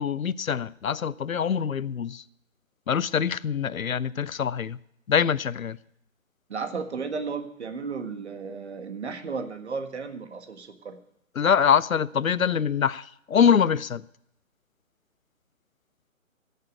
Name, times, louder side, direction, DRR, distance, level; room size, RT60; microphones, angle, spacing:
voice 1, 0.0-2.2 2.9-4.8 5.1-5.8 11.4-14.0, left 7 dB, 75° left, 0.6 m, -24 dB
voice 2, 6.5-11.0, right 5 dB, 50° right, 1.7 m, -34 dB
15.0 x 6.8 x 8.0 m
figure-of-eight pair, 145°, 41 cm